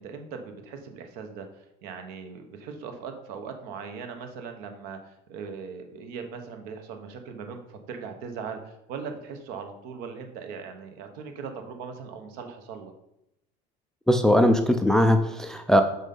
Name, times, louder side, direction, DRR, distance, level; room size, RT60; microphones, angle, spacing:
voice 1, 0.0-12.9, right 5 dB, 65° right, 6 dB, 1.2 m, -39 dB
voice 2, 14.1-15.8, left 1 dB, 5° left, 6 dB, 0.3 m, -20 dB
6.3 x 5.3 x 5.4 m, 0.84 s
cardioid pair, 170°, 16 cm